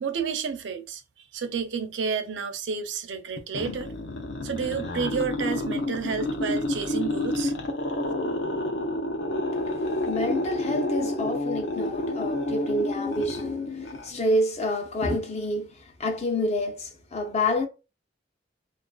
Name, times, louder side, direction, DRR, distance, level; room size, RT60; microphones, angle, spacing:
voice 1, 0.0-3.9 4.4-7.5, right 6 dB, 75° right, 0.4 m, -30 dB
sound 1, 3.4-14.5, left 1 dB, 85° left, 0.6 m, -29 dB
voice 2, 10.1-17.7, left 1 dB, 35° left, 0.5 m, -28 dB
2.4 x 2.3 x 2.2 m
head